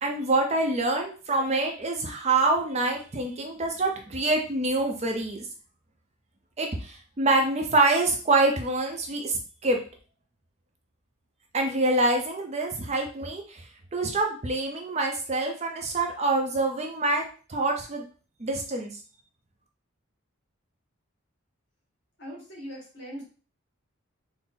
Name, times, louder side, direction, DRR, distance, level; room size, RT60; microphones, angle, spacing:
voice 1, 0.0-5.4 6.6-9.8 11.5-13.6 13.9-17.2 17.5-18.0 18.4-18.9, right 2 dB, 30° right, 2 dB, 0.5 m, -26 dB
voice 2, 22.2-23.2, equal, 55° left, -3 dB, 1.7 m, -40 dB
4.1 x 2.0 x 3.7 m, 0.38 s
head